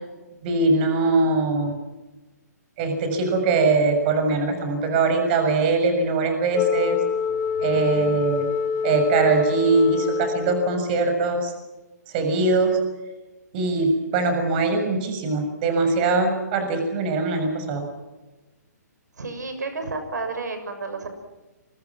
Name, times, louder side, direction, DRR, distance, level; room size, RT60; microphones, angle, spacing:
voice 1, 0.4-1.7 2.8-7.0 7.6-8.5 8.8-11.5 12.1-12.8 13.5-17.8, right 3 dB, 35° right, 6 dB, 6.9 m, -22 dB
Wind instrument woodwind instrument, 6.5-10.9, left 6 dB, 20° left, 2.4 m, -26 dB
voice 2, 19.2-21.1, right 3 dB, 80° right, 7 dB, 6.7 m, -31 dB
27.5 x 25.0 x 6.1 m, 1.1 s
hypercardioid pair, 150°, 9 cm